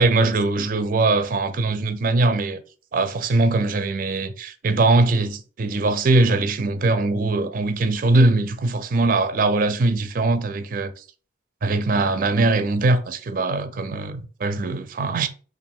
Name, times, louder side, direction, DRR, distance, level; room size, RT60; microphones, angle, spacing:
voice 1, 0.0-2.6 2.9-11.0 11.6-15.3, right 2 dB, 50° right, 0.4 m, -21 dB
3.1 x 2.5 x 4.3 m
head